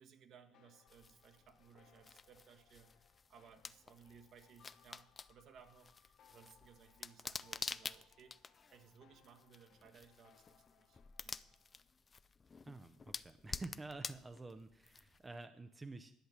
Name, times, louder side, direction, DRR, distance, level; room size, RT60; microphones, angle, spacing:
voice 1, 0.0-11.6, right 7 dB, 55° right, 8 dB, 1.5 m, -62 dB
sound 1, 0.5-11.8, left 9 dB, 60° left, 1.0 m, -70 dB
sound 2, 0.9-15.4, left 5 dB, 25° left, 0.4 m, -50 dB
voice 2, 12.6-16.1, right 2 dB, 20° right, 9 dB, 0.6 m, -49 dB
11.5 x 7.9 x 7.3 m, 0.75 s
cardioid pair, 110°, 0 cm